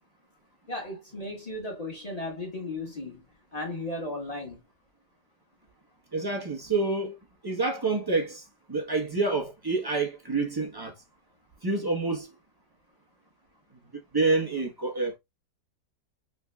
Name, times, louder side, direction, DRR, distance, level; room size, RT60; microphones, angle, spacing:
voice 1, 0.7-3.2 3.5-4.6, left 2 dB, 20° left, 1.5 m, -35 dB
voice 2, 6.1-7.2 7.4-10.9 11.6-12.3 13.9-15.2, right 3 dB, 30° right, 0.4 m, -28 dB
4.4 x 3.7 x 2.2 m
omnidirectional pair, 2.0 m